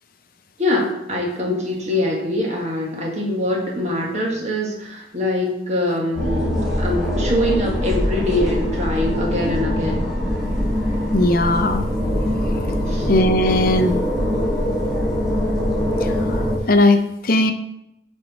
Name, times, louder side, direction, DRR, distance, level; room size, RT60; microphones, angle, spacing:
voice 1, 0.6-10.1 12.9-13.1, left 1 dB, 35° right, -1 dB, 1.7 m, -23 dB
sound 1, 6.1-16.6, left 1 dB, ahead, 1.8 m, -22 dB
voice 2, 11.1-11.9 13.1-14.0 16.0-17.5, left 1 dB, 45° left, 8 dB, 0.6 m, -18 dB
8.9 x 4.5 x 4.3 m, 0.82 s
head